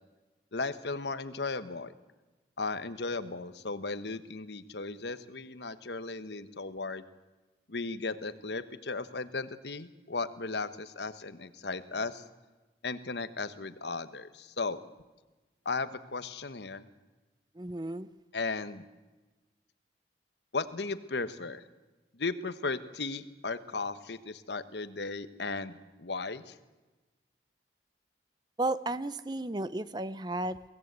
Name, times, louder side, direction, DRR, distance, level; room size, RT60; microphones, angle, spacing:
voice 1, 0.5-1.9 2.6-7.0 7.7-12.2 12.8-14.8 15.6-16.8 18.3-18.8 20.5-21.6 22.2-26.5, left 3 dB, 75° left, 12 dB, 1.1 m, -36 dB
voice 2, 17.6-18.1 28.6-30.7, right 2 dB, 25° right, 15 dB, 0.6 m, -33 dB
23.5 x 17.0 x 8.1 m, 1.2 s
head